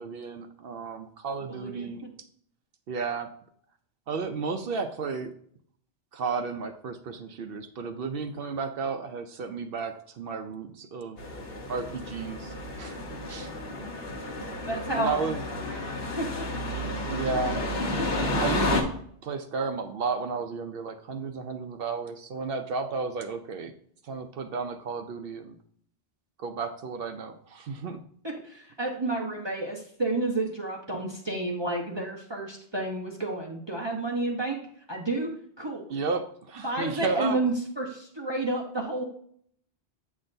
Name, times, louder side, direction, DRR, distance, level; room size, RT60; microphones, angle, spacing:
voice 1, 0.0-2.0 2.9-3.3 4.1-5.3 6.1-11.2 11.7-13.0 13.3-13.5 14.9-15.4 17.1-17.7 18.4-18.8 19.2-23.7 24.0-25.5 26.4-28.0 35.9-37.4, right 4 dB, 65° right, 7 dB, 0.7 m, -33 dB
voice 2, 1.5-1.9 14.7-15.8 16.2-16.5 17.2-17.7 18.0-18.2 28.2-34.6 34.9-35.3 35.6-35.8 36.6-39.0, right 2 dB, 25° right, -1 dB, 0.9 m, -31 dB
sound 1, 11.2-18.8, left 1 dB, 65° left, 1.3 m, -31 dB
8.6 x 6.0 x 2.6 m, 0.62 s
omnidirectional pair, 1.1 m